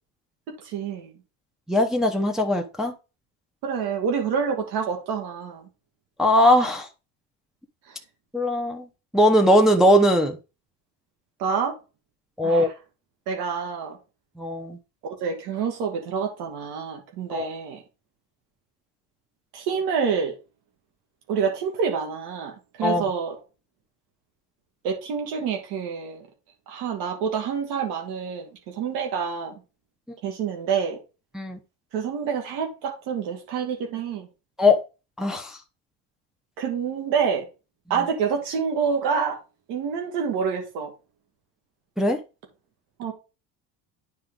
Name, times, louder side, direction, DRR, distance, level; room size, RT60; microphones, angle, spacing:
voice 1, 0.5-1.1 3.6-5.7 7.9-8.0 11.4-11.8 12.4-12.7 13.3-14.0 15.2-17.8 19.5-20.4 21.3-22.5 22.8-23.4 24.8-26.3 26.7-29.6 30.2-31.0 31.9-34.3 36.6-37.5 37.9-39.4 39.7-40.9 43.0-43.1, right 6 dB, 90° right, 2.2 m, -27 dB
voice 2, 1.7-2.9 6.2-6.9 8.3-8.8 9.1-10.4 12.4-12.7 14.4-14.8 17.3-17.5 22.8-23.0 31.3-31.6 34.6-34.8 35.2-35.6 42.0-42.2, left 1 dB, ahead, 0.7 m, -20 dB
9.6 x 4.5 x 3.8 m
cardioid pair, 160°, 33 cm